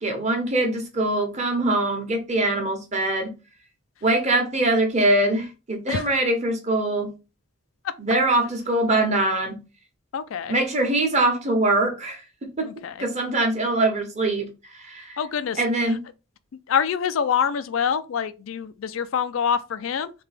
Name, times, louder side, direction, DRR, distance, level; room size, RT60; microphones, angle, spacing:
voice 1, 0.0-3.3 4.0-7.1 8.0-9.6 10.5-12.2 12.6-12.7 13.0-14.5 14.8-15.2 15.6-16.0, right 2 dB, 35° right, 1.0 m, -23 dB
voice 2, 10.1-10.6 12.6-13.1 15.2-16.0 16.7-20.1, left 7 dB, 80° left, 0.4 m, -26 dB
3.5 x 2.8 x 3.3 m
head